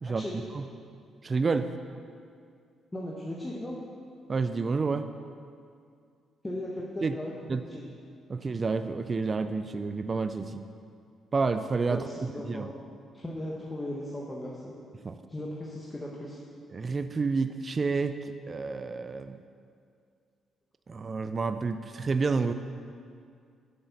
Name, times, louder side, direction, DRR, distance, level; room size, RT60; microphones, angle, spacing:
voice 1, 0.0-0.3 2.9-3.7 6.4-7.8 11.9-12.7 13.1-14.7 15.3-16.4, left 1 dB, 15° left, -4 dB, 1.1 m, -37 dB
voice 2, 1.2-1.7 4.3-5.1 7.0-7.1 7.5-7.6 8.3-10.6 11.3-12.0 12.5-12.7 15.0-15.2 16.7-18.2 18.5-19.4 20.9-22.5, right 4 dB, 35° right, 9 dB, 0.3 m, -29 dB
7.8 x 6.7 x 5.7 m, 2.3 s
cardioid pair, 90°, 0 cm